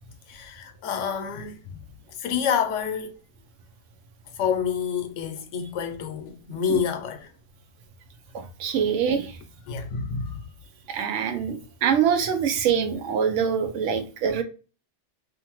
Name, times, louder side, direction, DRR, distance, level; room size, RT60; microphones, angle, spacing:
voice 1, 0.3-1.8 2.1-3.2 4.3-7.3 9.7-10.4, left 7 dB, 85° left, 0.9 m, -28 dB
voice 2, 8.6-9.3 10.9-14.4, right 7 dB, 85° right, 0.9 m, -24 dB
2.6 x 2.5 x 2.9 m
omnidirectional pair, 1.2 m